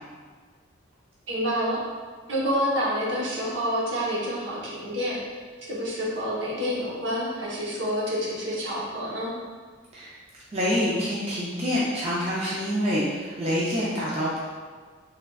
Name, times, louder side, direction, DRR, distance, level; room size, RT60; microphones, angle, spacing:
voice 1, 1.3-1.8 2.3-5.2 5.7-9.3, equal, 65° right, -5 dB, 0.9 m, -28 dB
voice 2, 10.5-14.4, equal, 30° right, -7 dB, 0.4 m, -26 dB
3.7 x 3.3 x 2.3 m, 1.6 s
head